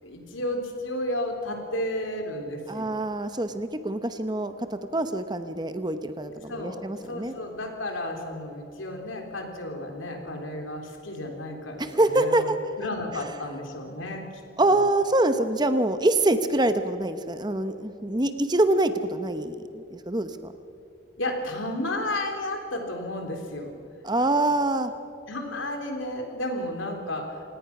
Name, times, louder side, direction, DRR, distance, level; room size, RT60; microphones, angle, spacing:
voice 1, 0.0-3.0 6.5-12.5 12.8-14.2 14.6-14.8 21.2-23.8 25.3-27.4, left 1 dB, 90° left, 2 dB, 3.7 m, -32 dB
voice 2, 2.7-7.3 11.8-12.5 14.6-20.5 24.0-24.9, right 2 dB, 20° right, 9 dB, 0.9 m, -25 dB
28.0 x 18.0 x 6.0 m, 2.4 s
head